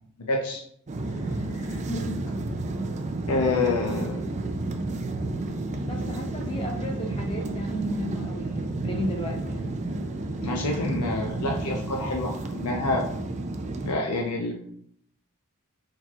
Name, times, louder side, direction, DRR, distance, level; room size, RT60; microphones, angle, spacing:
voice 1, 0.3-0.6 1.5-1.8 3.3-4.2 10.4-13.0 13.8-14.5, left 2 dB, 90° left, 1 dB, 0.6 m, -27 dB
sound 1, 0.9-13.9, right 2 dB, 30° right, 0.4 m, -31 dB
voice 2, 5.8-9.7, equal, 25° left, 2 dB, 0.7 m, -34 dB
4.4 x 3.8 x 2.4 m, 0.70 s
head